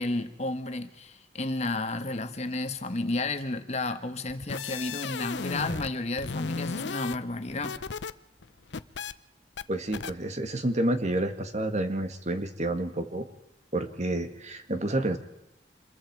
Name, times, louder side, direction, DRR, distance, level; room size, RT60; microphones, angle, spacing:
voice 1, 0.0-7.8, left 2 dB, 40° left, 9 dB, 1.3 m, -32 dB
sound 1, 4.3-5.9 6.2-8.1 8.4-9.1 9.6-9.7 9.9-10.1, left 5 dB, 90° left, 0.7 m, -35 dB
voice 2, 9.7-13.2 13.7-15.2, right 1 dB, 40° right, 7 dB, 1.8 m, -29 dB
26.5 x 22.0 x 4.7 m, 0.87 s
head